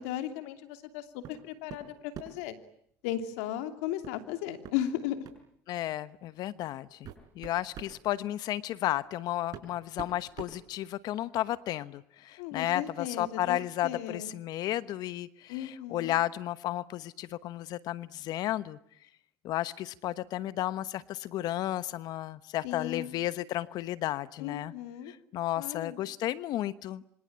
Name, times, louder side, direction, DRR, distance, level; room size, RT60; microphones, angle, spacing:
voice 1, 0.0-2.5 3.0-5.2 12.4-14.3 15.5-16.1 22.6-23.1 24.4-25.1 25.6-26.0, left 11 dB, 80° left, 8 dB, 2.9 m, -36 dB
sound 1, 1.2-1.4 1.7-2.5 4.0-4.2 4.6-4.8 5.2-5.4 6.3-6.4 6.8-8.0 9.0-9.1 9.5-11.3, right 9 dB, 55° right, 6.0 m, -45 dB
voice 2, 5.7-7.1 7.3-18.8 19.4-24.7 25.1-27.1, left 14 dB, 60° left, 15 dB, 1.1 m, -33 dB
26.0 x 25.5 x 8.9 m, 0.69 s
supercardioid pair, 85°, 8 cm